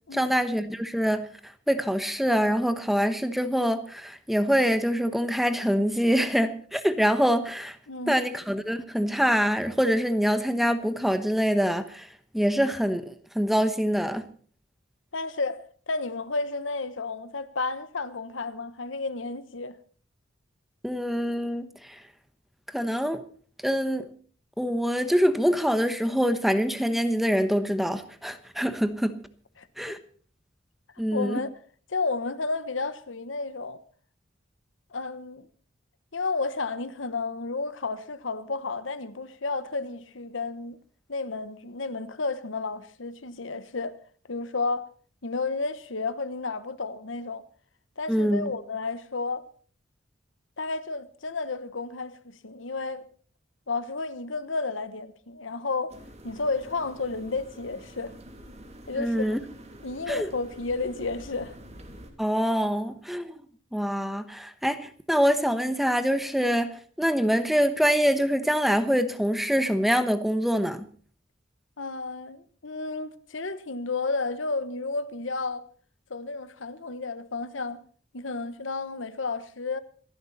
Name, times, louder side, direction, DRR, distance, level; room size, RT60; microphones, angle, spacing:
voice 1, 0.1-7.8 8.1-12.1 12.3-14.2 20.8-22.0 22.7-23.2 23.6-24.1 24.6-29.2 29.8-30.0 31.0-31.4 48.1-48.5 58.9-59.4 60.1-60.3 62.2-63.3 63.7-70.9, equal, ahead, 1.1 m, -25 dB
voice 2, 7.9-8.2 15.1-19.8 29.6-29.7 31.1-31.5 31.9-33.8 34.9-35.5 36.1-40.8 41.1-43.9 44.3-44.9 45.2-47.4 48.0-49.5 50.6-53.0 53.7-56.0 56.2-58.1 58.9-59.3 59.8-61.5 71.8-75.7 76.1-77.8 78.1-79.8, left 3 dB, 75° left, 1.2 m, -32 dB
sound 1, 55.9-62.1, right 1 dB, 35° right, 2.8 m, -47 dB
27.0 x 11.5 x 4.1 m
head